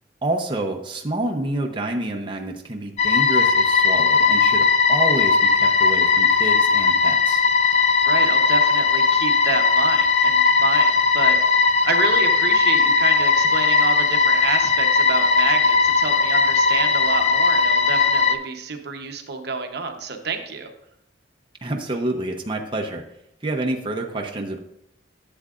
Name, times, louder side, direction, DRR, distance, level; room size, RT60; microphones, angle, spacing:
voice 1, 0.2-7.4 21.6-23.0 23.4-24.6, right 1 dB, 25° right, 1 dB, 0.7 m, -28 dB
sound 1, 3.0-18.3, left 4 dB, 35° left, 0.4 m, -18 dB
voice 2, 8.1-20.7, right 4 dB, 60° right, 5 dB, 0.9 m, -29 dB
12.0 x 7.6 x 2.4 m, 0.78 s
head